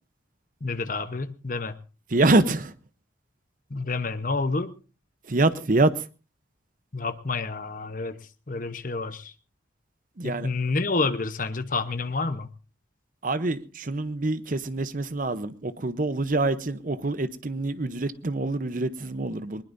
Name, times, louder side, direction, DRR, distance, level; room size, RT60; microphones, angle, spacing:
voice 1, 0.6-1.8 3.7-4.7 6.9-9.3 10.2-12.5, left 3 dB, 45° left, 1.0 m, -29 dB
voice 2, 2.1-2.7 5.3-6.1 10.2-10.5 13.2-19.6, right 2 dB, 45° right, 0.8 m, -25 dB
20.5 x 20.5 x 2.7 m
head